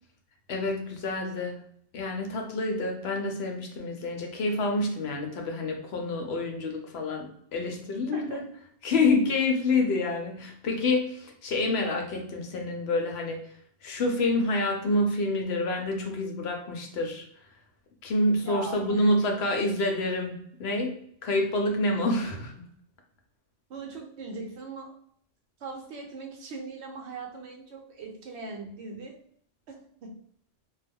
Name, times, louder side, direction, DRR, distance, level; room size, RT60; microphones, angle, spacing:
voice 1, 0.5-1.6 1.9-8.4 8.8-13.4 13.8-17.2 18.0-20.9 21.2-22.6, left 2 dB, 65° left, 2 dB, 0.8 m, -27 dB
voice 2, 8.1-8.4 18.4-19.1 23.7-24.9 25.6-29.1 29.7-30.1, right 3 dB, 70° right, 2 dB, 0.8 m, -40 dB
2.3 x 2.1 x 3.4 m, 0.65 s
omnidirectional pair, 1.2 m